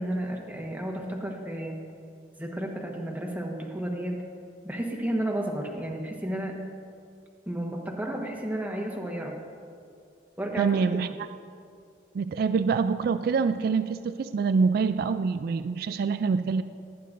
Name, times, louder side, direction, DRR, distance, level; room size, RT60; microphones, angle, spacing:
voice 1, 0.0-1.8 2.4-4.2 4.6-6.6 7.5-9.4 10.4-10.8, right 1 dB, 10° right, 0 dB, 1.2 m, -32 dB
voice 2, 10.6-11.1 12.1-16.6, right 5 dB, 60° right, 11 dB, 0.3 m, -25 dB
18.0 x 10.0 x 2.6 m, 2.3 s
head